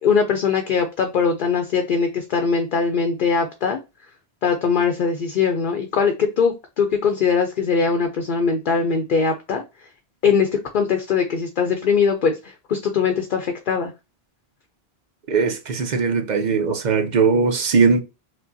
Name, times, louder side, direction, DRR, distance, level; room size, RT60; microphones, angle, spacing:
voice 1, 0.0-3.8 4.4-9.6 10.2-10.5 10.7-13.9, left 5 dB, 55° left, 0.7 m, -21 dB
voice 2, 15.3-18.0, right 5 dB, 50° right, 0.7 m, -19 dB
4.8 x 2.2 x 2.6 m
omnidirectional pair, 1.1 m